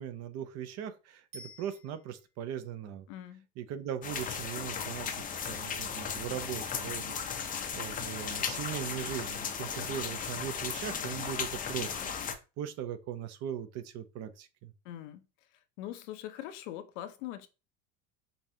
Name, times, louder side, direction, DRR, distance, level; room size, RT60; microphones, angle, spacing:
voice 1, 0.0-3.1 3.6-14.7, right 9 dB, 45° right, 0.6 m, -39 dB
Bicycle bell, 1.3-2.4 11.5-11.6, left 1 dB, 65° right, 1.5 m, -52 dB
voice 2, 3.1-3.5 14.8-15.3 15.8-17.5, left 12 dB, 75° left, 0.7 m, -42 dB
sound 1, 4.0-12.3, left 7 dB, 25° left, 0.5 m, -36 dB
5.3 x 2.5 x 2.7 m
supercardioid pair, 125°, 36 cm